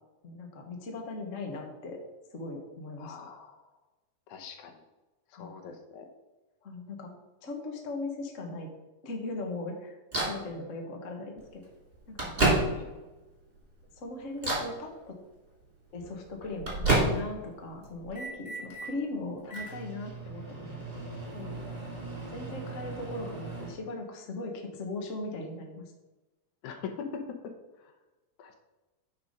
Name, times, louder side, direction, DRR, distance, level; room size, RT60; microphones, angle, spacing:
voice 1, 0.2-2.0 2.3-3.3 5.4-5.5 6.6-7.1 7.4-8.7 9.0-10.0 10.3-11.6 12.1-12.3 14.0-15.1 15.9-20.8 21.3-21.6 22.3-25.8, left 2 dB, 45° left, 2 dB, 1.0 m, -39 dB
voice 2, 3.0-3.6 4.3-4.8 5.3-6.1 10.5-10.8 12.7-12.9 26.6-27.9 28.4-28.6, left 6 dB, 75° left, 6 dB, 2.2 m, -42 dB
Microwave oven, 10.1-10.4 11.4-11.5 11.9-13.1 13.6-13.9 14.4-14.8 16.0-17.5 17.8-18.9 19.4-23.7, right 2 dB, 20° right, 2.4 m, -31 dB
9.7 x 4.9 x 5.1 m, 1.1 s
omnidirectional pair, 3.6 m